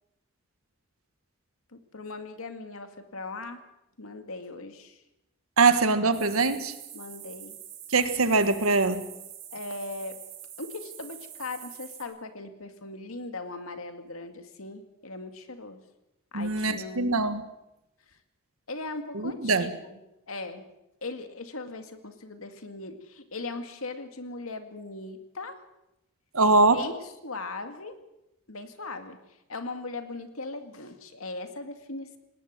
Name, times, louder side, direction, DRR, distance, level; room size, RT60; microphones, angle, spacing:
voice 1, 1.7-3.6 4.0-5.0 6.9-7.5 9.5-10.2 10.6-15.8 16.3-17.2 18.7-20.0 20.3-20.6 21.0-25.6 26.7-28.0 28.5-29.2 29.5-32.2, left 3 dB, 85° left, 7 dB, 2.2 m, -39 dB
voice 2, 5.6-6.7 7.9-9.0 16.3-17.4 19.1-19.7 26.3-26.8, right 3 dB, 90° right, 10 dB, 1.7 m, -22 dB
sound 1, 6.1-12.0, right 10 dB, 65° right, 5.6 m, -45 dB
19.5 x 18.5 x 7.6 m, 0.90 s
head